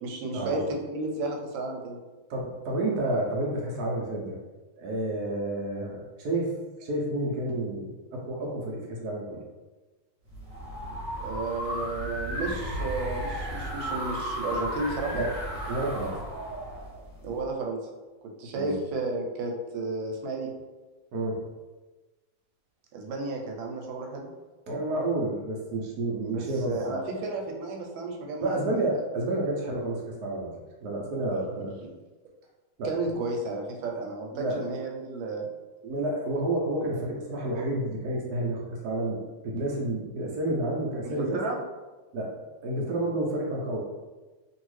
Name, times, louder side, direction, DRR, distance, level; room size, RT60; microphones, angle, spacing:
voice 1, 0.0-2.0 11.2-15.2 17.2-17.8 18.4-20.5 22.9-24.3 26.2-28.6 31.3-31.7 32.8-35.5 41.0-41.6, right 2 dB, 85° right, 1 dB, 1.4 m, -33 dB
voice 2, 2.3-4.4 4.8-6.5 6.8-9.4 15.1-15.3 15.7-16.2 18.6-18.8 21.1-21.4 24.7-27.2 28.4-30.5 30.8-31.7 32.8-32.9 34.3-34.6 35.8-41.4 42.1-42.3 42.6-43.8, right 1 dB, 70° right, -2 dB, 0.9 m, -30 dB
sound 1, 10.3-17.5, equal, 45° right, 1.0 m, -34 dB
2.9 x 2.7 x 3.1 m, 1.2 s
omnidirectional pair, 2.1 m